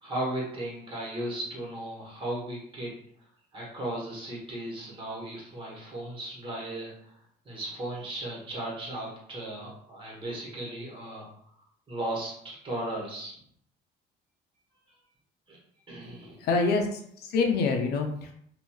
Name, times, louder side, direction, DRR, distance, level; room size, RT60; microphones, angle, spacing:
voice 1, 0.0-2.9 3.5-7.1 7.4-11.3 11.9-13.3 15.5-15.6 15.9-16.4, right 1 dB, 30° right, -4 dB, 1.3 m, -36 dB
voice 2, 16.4-18.3, left 4 dB, 70° left, 2 dB, 0.5 m, -26 dB
2.9 x 2.6 x 2.3 m, 0.67 s
cardioid pair, 110°, 17 cm